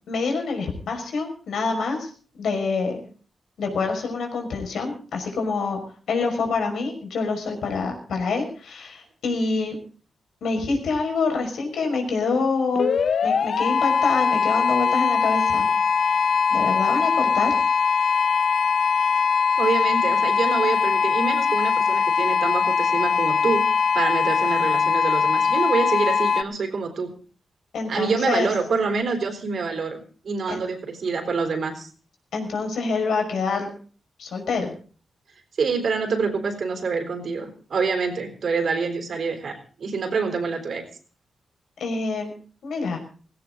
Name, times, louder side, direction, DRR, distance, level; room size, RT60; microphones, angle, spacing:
voice 1, 0.1-2.1 2.4-3.0 3.6-5.8 6.1-9.7 10.4-12.9 13.2-15.7 16.5-17.5 27.7-28.5 30.5-30.6 32.3-33.7 34.2-34.8 41.8-42.3 42.6-43.0, left 4 dB, 90° left, 3 dB, 5.6 m, -26 dB
sound 1, 12.8-26.4, left 6 dB, 60° left, 0.6 m, -21 dB
voice 2, 19.6-23.7 23.9-27.1 27.9-31.9 35.6-40.8, right 4 dB, 60° right, 6 dB, 3.8 m, -26 dB
18.0 x 17.0 x 3.9 m, 0.40 s
wide cardioid pair, 145°, 0 cm